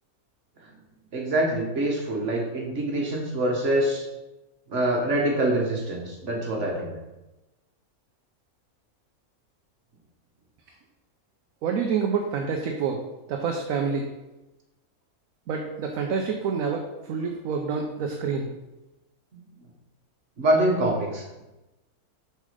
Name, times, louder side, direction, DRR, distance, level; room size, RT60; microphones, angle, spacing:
voice 1, 1.1-4.0 4.7-6.9 19.3-19.4 20.4-21.4, right 1 dB, 50° right, -1 dB, 1.7 m, -25 dB
voice 2, 11.6-13.0 13.3-14.1 15.5-18.5, right 5 dB, 70° right, 3 dB, 1.1 m, -27 dB
7.2 x 4.2 x 5.0 m, 1.0 s
omnidirectional pair, 1.6 m